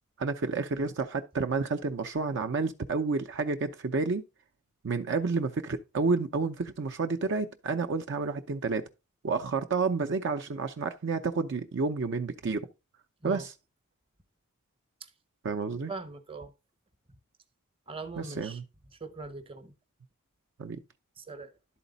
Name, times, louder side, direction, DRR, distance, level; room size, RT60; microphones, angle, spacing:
voice 1, 0.2-4.2 4.8-8.8 9.2-12.7 13.2-13.5 15.4-15.9 18.2-18.6 20.6-20.8, right 4 dB, 55° right, 0.5 m, -30 dB
voice 2, 15.9-16.5 17.9-18.6 19.0-19.7 21.2-21.5, right 3 dB, 25° right, 0.8 m, -40 dB
11.5 x 4.1 x 3.9 m
head